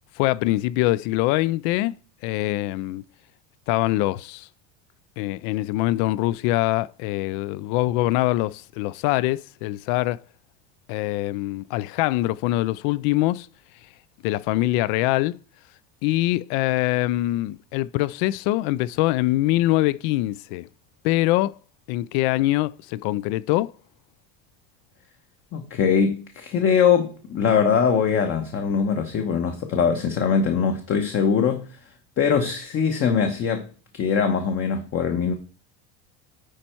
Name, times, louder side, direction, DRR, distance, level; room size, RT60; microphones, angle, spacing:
voice 1, 0.2-1.9 2.2-3.0 3.7-4.5 5.2-10.2 10.9-13.5 14.2-15.4 16.0-20.7 21.0-21.6 21.9-23.7, left 17 dB, 65° left, 0.5 m, -23 dB
voice 2, 25.5-31.7 32.2-33.7 33.9-35.3, left 6 dB, 40° left, 1.0 m, -22 dB
9.8 x 4.4 x 4.4 m
supercardioid pair, 130°, 34 cm